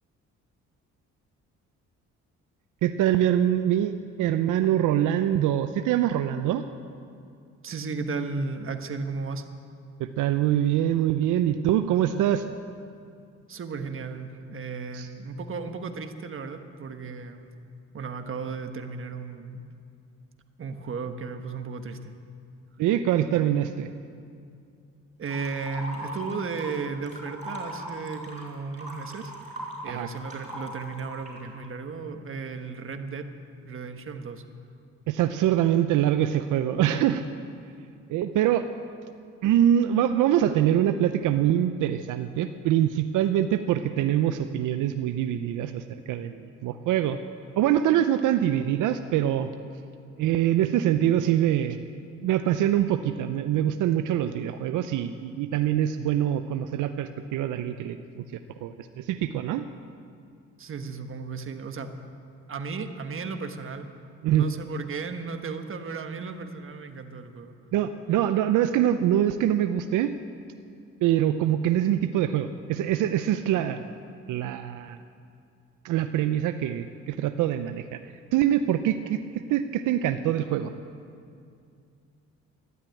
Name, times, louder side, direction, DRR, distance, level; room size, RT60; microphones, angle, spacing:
voice 1, 2.8-6.6 10.0-12.4 14.9-15.1 22.8-23.9 29.8-30.1 35.1-37.2 38.1-38.7 39.4-47.2 47.6-49.5 50.2-51.8 52.2-58.3 58.6-59.6 64.2-64.5 67.7-70.1 71.0-73.9 74.3-75.0 75.8-78.0 78.3-80.7, right 11 dB, 85° right, 9 dB, 0.6 m, -24 dB
voice 2, 7.6-9.4 13.5-17.5 17.9-19.6 20.6-22.1 25.2-29.3 29.8-33.3 33.6-34.4 60.6-61.9 62.5-63.9 64.3-67.6, right 4 dB, 45° right, 7 dB, 1.3 m, -35 dB
sound 1, 25.3-26.8 27.0-31.5, right 1 dB, 25° right, 4.8 m, -39 dB
12.5 x 11.5 x 9.0 m, 2.4 s
cardioid pair, 90°, 30 cm